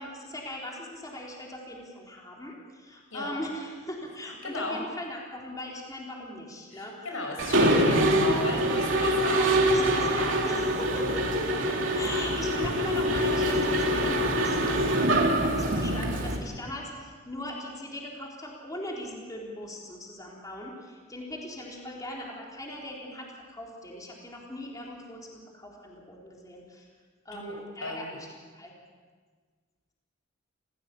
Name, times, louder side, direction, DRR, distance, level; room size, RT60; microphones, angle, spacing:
voice 1, 0.0-6.9 9.4-26.9 27.3-28.3 28.5-28.7, left 1 dB, 20° left, -2 dB, 3.9 m, -39 dB
voice 2, 4.4-4.8 6.7-9.5 27.3-27.5 27.8-28.2, left 2 dB, 80° left, 2 dB, 6.1 m, -35 dB
Mechanisms, 7.4-16.4, right 1 dB, 70° right, 3.2 m, -24 dB
29.5 x 16.0 x 8.5 m, 1.5 s
head